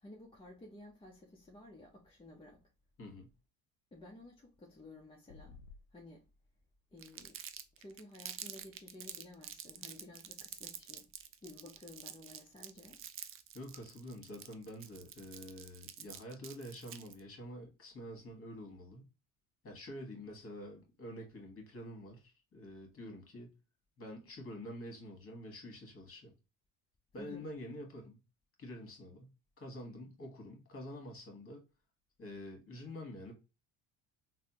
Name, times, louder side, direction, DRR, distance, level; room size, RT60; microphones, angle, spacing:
voice 1, 0.0-2.6 3.9-5.6 5.9-6.3 6.9-7.4 7.8-11.1 11.4-13.0 27.2-27.5, left 1 dB, 15° left, 0.6 m, -54 dB
sound 1, 5.3-5.9, left 5 dB, 65° left, 0.5 m, -53 dB
Crumpling crinkling, 7.0-17.2, right 10 dB, 35° right, 0.4 m, -48 dB
voice 2, 13.5-19.1 19.6-23.5 24.0-26.3 27.1-28.2 28.6-31.6 32.2-33.3, left 1 dB, 35° left, 1.5 m, -47 dB
3.4 x 2.1 x 2.9 m
supercardioid pair, 80°, 40 cm